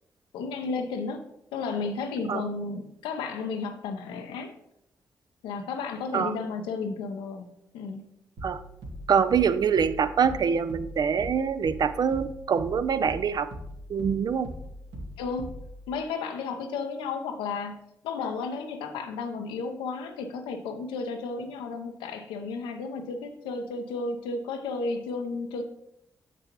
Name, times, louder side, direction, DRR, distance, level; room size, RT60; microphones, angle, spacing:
voice 1, 0.3-1.3 1.5-4.5 5.4-7.5 7.7-8.0 15.2-15.5 15.9-17.8 18.0-25.6, left 4 dB, 85° left, 6 dB, 0.6 m, -33 dB
sound 1, 8.4-15.9, equal, 75° right, 1.3 m, -41 dB
voice 2, 9.1-13.5 13.9-14.5, right 7 dB, 55° right, 13 dB, 0.4 m, -25 dB
6.7 x 6.1 x 3.0 m, 0.80 s
hypercardioid pair, 40°, 8 cm